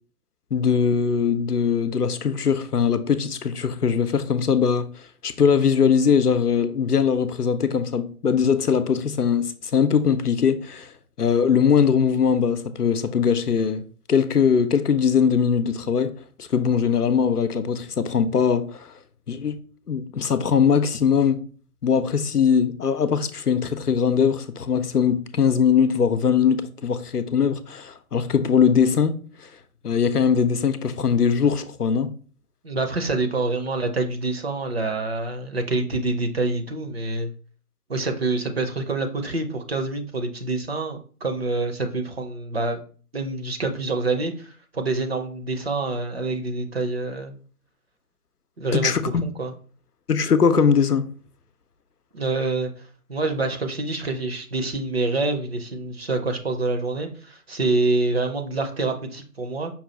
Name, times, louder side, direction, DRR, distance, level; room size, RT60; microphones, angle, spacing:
voice 1, 0.5-4.9 5.2-10.9 11.2-13.8 14.1-16.1 16.4-18.8 19.3-19.6 19.9-21.4 21.8-29.2 29.8-32.1 48.7-49.2 50.1-51.1, left 6 dB, 90° left, 0.6 m, -21 dB
voice 2, 32.6-37.3 37.9-42.8 43.1-47.3 48.6-49.5 52.1-52.7 53.1-59.7, right 3 dB, 45° right, 0.6 m, -26 dB
5.5 x 2.3 x 3.9 m
figure-of-eight pair, 140°, 45 cm